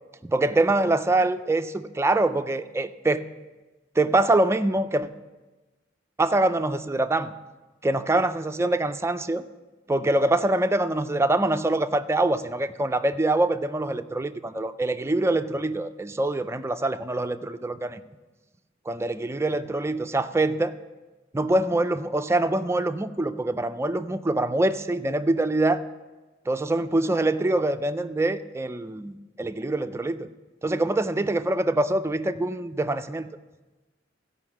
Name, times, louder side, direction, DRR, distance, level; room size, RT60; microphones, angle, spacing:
voice 1, 0.2-3.3 4.0-5.1 6.2-7.3 7.8-9.4 9.9-18.0 18.9-20.7 21.3-25.8 26.5-30.3 30.6-33.3, right 2 dB, 15° right, 10 dB, 0.4 m, -24 dB
14.5 x 5.6 x 7.3 m, 1.2 s
head